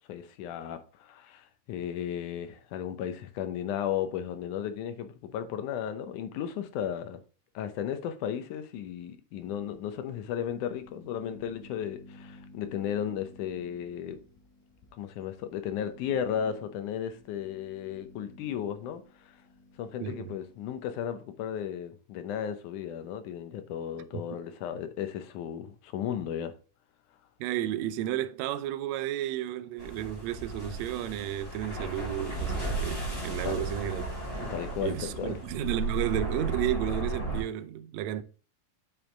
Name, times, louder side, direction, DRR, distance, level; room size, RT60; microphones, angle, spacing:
voice 1, 0.1-7.2 7.6-14.2 15.0-19.0 19.8-26.5 33.4-33.7 34.5-35.4, left 9 dB, 90° left, 2.3 m, -35 dB
sound 1, 9.3-21.0, left 2 dB, 75° left, 3.1 m, -54 dB
voice 2, 20.0-20.3 24.1-24.2 27.4-34.0 34.4-34.6 34.8-38.2, right 12 dB, 75° right, 1.7 m, -32 dB
sound 2, 29.8-37.4, right 2 dB, 30° left, 4.0 m, -34 dB
7.5 x 5.4 x 3.8 m
omnidirectional pair, 3.4 m